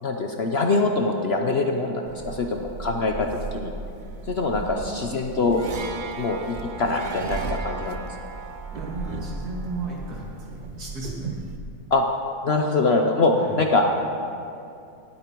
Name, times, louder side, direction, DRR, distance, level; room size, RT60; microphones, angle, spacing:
voice 1, 0.0-3.7 4.3-5.6 6.2-8.0 11.9-12.0 12.4-13.9, left 3 dB, 50° left, 3 dB, 0.8 m, -23 dB
sound 1, 2.0-11.6, right 4 dB, 50° right, 0.5 m, -35 dB
voice 2, 4.5-5.2 8.7-10.2 10.7-11.3 13.4-13.6, right 2 dB, 75° right, -4 dB, 2.9 m, -35 dB
18.5 x 8.7 x 4.6 m, 2.6 s
omnidirectional pair, 1.7 m